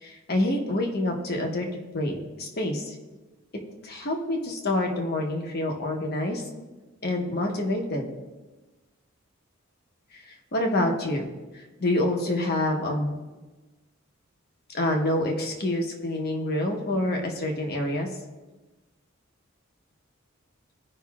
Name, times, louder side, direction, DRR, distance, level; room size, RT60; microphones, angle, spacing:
voice 1, 0.0-1.7 1.9-2.9 3.8-6.4 7.0-8.1 10.3-11.3 11.8-13.2 14.7-18.1, left 1 dB, 50° left, 1 dB, 1.1 m, -27 dB
15.0 x 5.4 x 2.4 m, 1.2 s
head